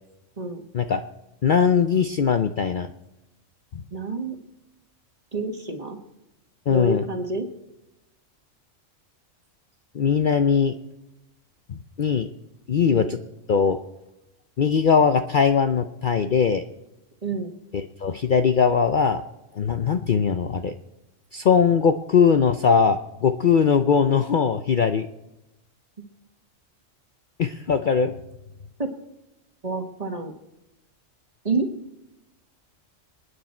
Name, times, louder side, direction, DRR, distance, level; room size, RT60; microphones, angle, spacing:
voice 1, 0.4-0.7 3.9-4.3 5.3-6.0 6.7-7.5 12.9-13.1 17.2-17.5 28.8-28.9 29.6-30.3 31.4-31.7, right 3 dB, 30° right, 5 dB, 1.6 m, -28 dB
voice 2, 1.4-2.9 3.7-3.8 6.7-7.0 9.9-10.7 11.7-12.3 12.7-13.2 13.5-13.8 14.6-16.6 17.7-19.2 19.5-20.7 21.3-25.1 27.4-28.1, left 6 dB, 50° left, 8 dB, 0.7 m, -20 dB
27.5 x 9.6 x 4.4 m, 0.92 s
omnidirectional pair, 1.3 m